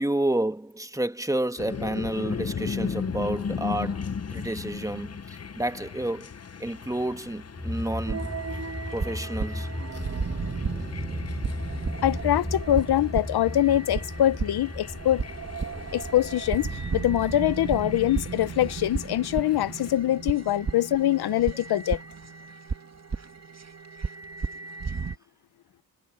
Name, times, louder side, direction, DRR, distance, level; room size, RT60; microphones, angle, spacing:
voice 1, 0.0-5.2 5.5-6.3 6.6-8.3 8.9-9.7, right 1 dB, 10° right, 1.8 m, -30 dB
sound 1, 1.6-19.9, left 6 dB, 40° left, 1.1 m, -38 dB
sound 2, 7.6-17.8, left 1 dB, 15° left, 7.3 m, -36 dB
sound 3, 8.1-25.2, right 5 dB, 40° right, 2.1 m, -34 dB
voice 2, 12.0-15.2 15.9-22.0, left 13 dB, 80° left, 0.9 m, -24 dB
cardioid pair, 55°, 38 cm